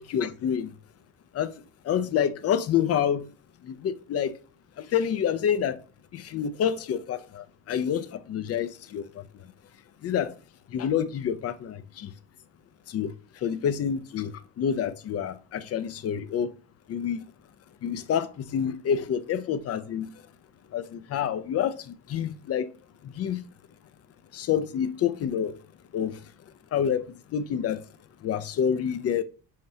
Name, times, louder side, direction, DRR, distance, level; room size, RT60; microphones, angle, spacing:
voice 1, 0.1-0.7 1.4-1.5 1.9-3.2 3.8-4.3 4.9-5.8 6.1-7.2 7.7-9.0 10.0-10.3 10.7-11.7 12.0-12.1 12.9-13.1 13.4-14.3 14.6-16.5 16.9-17.2 17.8-18.3 18.5-20.1 20.7-21.7 22.1-22.6 23.2-23.4 24.3-25.5 25.9-26.1 26.7-27.0 27.3-27.8 28.2-29.2, left 8 dB, 45° left, 0.7 m, -27 dB
7.6 x 4.5 x 2.8 m
cardioid pair, 145°, 35 cm